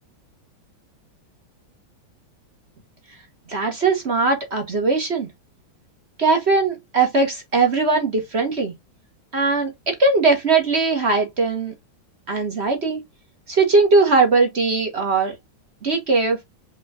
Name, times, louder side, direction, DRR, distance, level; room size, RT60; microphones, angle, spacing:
voice 1, 3.5-5.3 6.2-8.7 9.3-11.7 12.3-13.0 13.5-15.3 15.8-16.4, right 3 dB, 40° right, 1.2 m, -19 dB
5.5 x 3.0 x 2.7 m
omnidirectional pair, 2.2 m